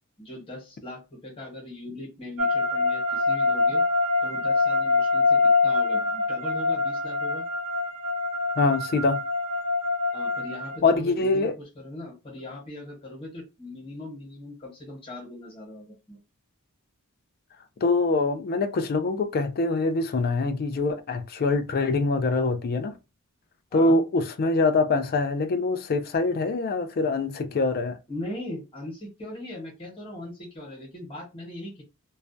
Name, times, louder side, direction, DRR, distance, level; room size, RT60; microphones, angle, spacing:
voice 1, 0.2-3.8 4.2-7.4 10.1-16.2 23.7-24.0 28.1-31.8, left 1 dB, 25° left, 1.0 m, -39 dB
sound 1, 2.4-10.8, left 3 dB, 80° right, 0.5 m, -24 dB
voice 2, 8.6-9.2 10.8-11.5 17.8-22.9 23.7-28.0, left 3 dB, 45° left, 0.3 m, -24 dB
2.3 x 2.1 x 2.5 m
head